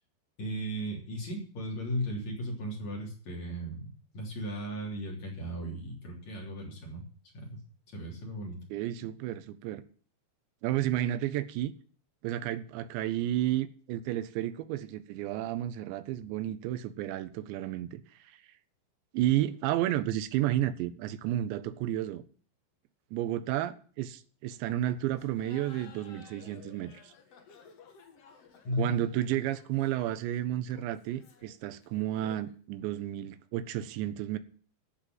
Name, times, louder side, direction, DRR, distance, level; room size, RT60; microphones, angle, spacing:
voice 1, 0.4-7.0 7.3-7.6 7.9-8.6 28.6-29.1, equal, 40° left, 4.2 m, -36 dB
voice 2, 8.7-9.8 10.6-11.7 12.2-18.4 19.1-22.2 23.1-27.1 28.8-34.4, right 13 dB, 85° right, 3.1 m, -32 dB
Laughter, 25.1-32.6, left 6 dB, 60° left, 1.6 m, -55 dB
14.0 x 5.3 x 9.1 m
omnidirectional pair, 5.1 m